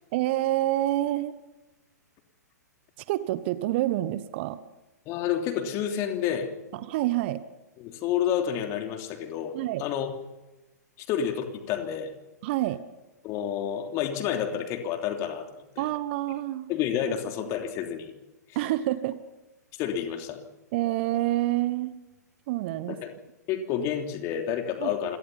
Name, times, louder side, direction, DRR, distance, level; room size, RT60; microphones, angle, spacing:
voice 1, 0.1-1.3 3.1-4.6 6.7-7.4 9.5-9.8 12.4-12.8 15.8-16.7 18.5-19.2 20.7-21.9 22.5-23.0 24.8-25.0, right 15 dB, 40° right, 15 dB, 1.1 m, -27 dB
voice 2, 5.0-6.5 7.8-10.1 11.1-12.1 13.2-15.5 15.7-15.9 16.7-18.1 19.8-20.4 22.9-23.1 23.5-25.2, left 9 dB, 30° left, 5 dB, 3.2 m, -29 dB
27.0 x 18.5 x 5.6 m, 1.1 s
figure-of-eight pair, 110°, 9 cm